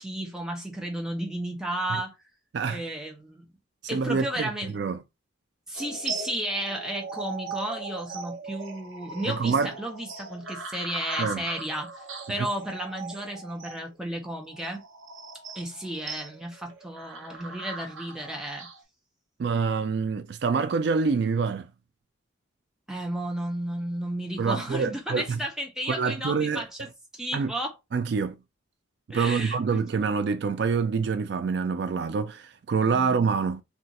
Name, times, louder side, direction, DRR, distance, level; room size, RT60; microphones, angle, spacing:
voice 1, 0.0-2.2 2.7-3.4 3.9-4.7 5.7-14.8 15.5-18.7 22.9-26.8 27.1-27.7 29.1-29.8 32.9-33.2, right 1 dB, 5° right, 0.8 m, -33 dB
voice 2, 3.9-5.0 9.3-9.7 11.2-11.4 19.4-21.7 24.4-25.4 25.9-26.6 27.3-27.5 27.9-28.4 29.1-33.6, right 5 dB, 55° right, 0.3 m, -26 dB
sound 1, 5.7-18.8, right 3 dB, 80° right, 0.8 m, -39 dB
2.5 x 2.3 x 4.0 m
head